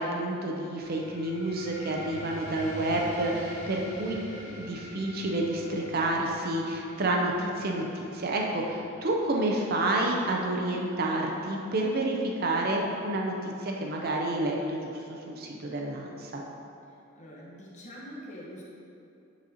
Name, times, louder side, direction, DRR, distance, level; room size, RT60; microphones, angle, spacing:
voice 1, 0.0-4.2 4.6-15.0 15.3-16.4, right 1 dB, 45° right, 0 dB, 0.5 m, -29 dB
sound 1, 0.8-11.9, left 1 dB, 60° left, 0.9 m, -45 dB
voice 2, 4.0-4.6 17.1-18.6, equal, 35° left, -5 dB, 1.1 m, -44 dB
8.9 x 4.0 x 2.8 m, 2.7 s
head